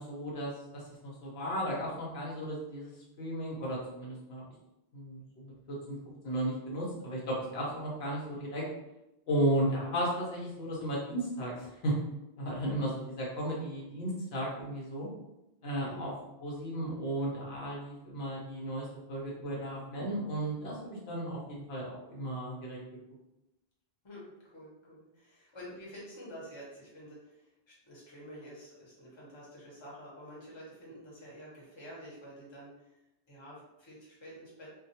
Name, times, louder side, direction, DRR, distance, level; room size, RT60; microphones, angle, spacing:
voice 1, 0.0-2.9 3.2-4.4 4.9-6.0 6.2-8.6 9.3-12.0 12.4-15.1 15.6-16.1 16.4-22.8, right 1 dB, 80° left, -4 dB, 1.0 m, -34 dB
voice 2, 15.8-16.1 24.0-33.0 33.3-34.7, equal, 30° left, -6 dB, 0.9 m, -49 dB
2.3 x 2.2 x 2.7 m, 0.91 s
omnidirectional pair, 1.0 m